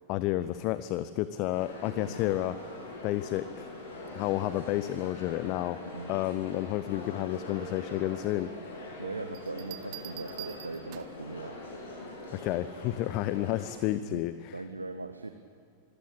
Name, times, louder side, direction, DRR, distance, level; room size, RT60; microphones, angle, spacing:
voice 1, 0.1-2.6 3.0-3.7 4.1-5.8 6.1-9.0 12.3-14.6, left 15 dB, 40° left, 14 dB, 0.6 m, -31 dB
sound 1, 1.5-13.7, left 2 dB, 60° left, 6.7 m, -43 dB
voice 2, 1.9-2.3 5.9-6.2 9.0-11.6 14.0-14.2 14.5-15.3, right 3 dB, 80° right, 9 dB, 1.0 m, -39 dB
Bell, 9.3-11.3 12.9-13.2, right 15 dB, 45° right, 1.1 m, -46 dB
26.0 x 15.0 x 8.7 m, 2.5 s
figure-of-eight pair, 90°, 0 cm